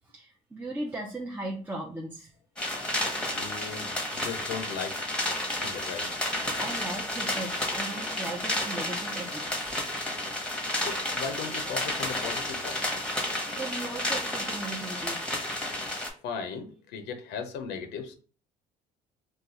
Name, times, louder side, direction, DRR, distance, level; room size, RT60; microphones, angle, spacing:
voice 1, 0.1-2.3 6.6-9.8 10.2-10.3 13.5-15.4, right 2 dB, 10° right, -1 dB, 0.4 m, -37 dB
sound 1, 2.6-16.1, left 1 dB, 5° left, 0.9 m, -31 dB
voice 2, 3.3-5.2 5.6-6.1 10.8-13.0 16.2-18.1, left 6 dB, 80° left, 6 dB, 0.6 m, -37 dB
2.4 x 2.3 x 3.9 m, 0.39 s
cardioid pair, 110°, 17 cm